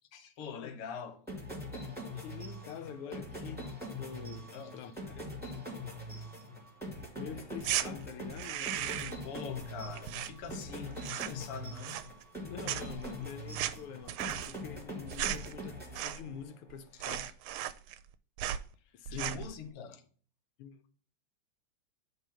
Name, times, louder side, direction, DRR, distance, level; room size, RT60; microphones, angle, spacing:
voice 1, 0.1-1.2 4.5-4.8 9.2-12.0 16.9-17.0 19.1-20.0, left 6 dB, 55° left, 1.1 m, -43 dB
sound 1, 1.3-16.6, left 1 dB, 5° right, 1.9 m, -43 dB
voice 2, 2.1-5.3 7.2-9.3 12.4-17.4 18.9-19.5 20.6-20.8, left 8 dB, 90° left, 1.6 m, -46 dB
sound 2, 7.6-7.9 8.3-9.3 9.5-10.7 11.0-11.5 11.8-12.4 12.6-16.4 16.7-16.8 17.0-18.1 18.4-18.7 19.1-19.5, right 12 dB, 80° right, 1.4 m, -36 dB
8.4 x 3.4 x 5.6 m
omnidirectional pair, 2.4 m